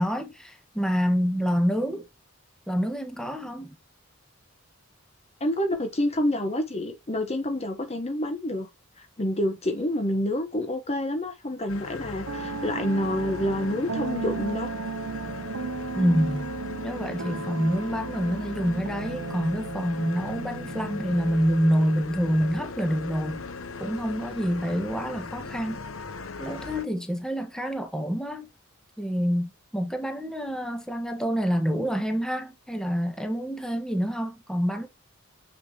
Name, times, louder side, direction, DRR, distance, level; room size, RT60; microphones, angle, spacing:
voice 1, 0.0-2.0 2.7-3.7 15.9-16.5 16.8-23.5 23.8-25.8 26.4-28.5 29.0-34.9, equal, 5° left, 1.5 m, -27 dB
voice 2, 5.4-8.7 9.0-14.7, left 1 dB, 30° left, 1.1 m, -28 dB
sound 1, 11.7-26.8, left 4 dB, 75° left, 1.0 m, -38 dB
sound 2, 12.3-21.3, right 5 dB, 70° right, 0.6 m, -35 dB
7.4 x 6.7 x 3.0 m
head